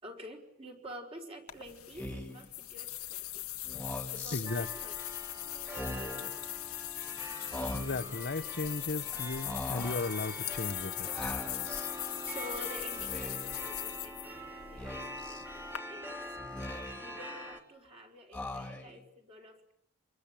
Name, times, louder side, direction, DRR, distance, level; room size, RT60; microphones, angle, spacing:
voice 1, 0.0-3.5 4.1-5.0 5.4-6.5 9.0-9.2 12.2-16.4 17.0-19.7, equal, 25° right, 2 dB, 4.9 m, -49 dB
sound 1, 1.5-15.8, left 15 dB, 85° left, 1.8 m, -40 dB
Speech, 1.9-2.5 3.6-4.4 5.6-6.3 7.5-8.2 9.4-10.1 11.1-11.9 12.9-13.6 14.8-15.4 16.4-17.2 18.3-19.0, left 1 dB, 5° left, 2.8 m, -41 dB
voice 2, 4.3-4.7 7.7-11.1, left 3 dB, 50° left, 13 dB, 1.2 m, -36 dB
sound 2, 4.5-17.6, equal, 10° right, 2.9 m, -44 dB
28.0 x 22.5 x 9.0 m, 0.70 s
head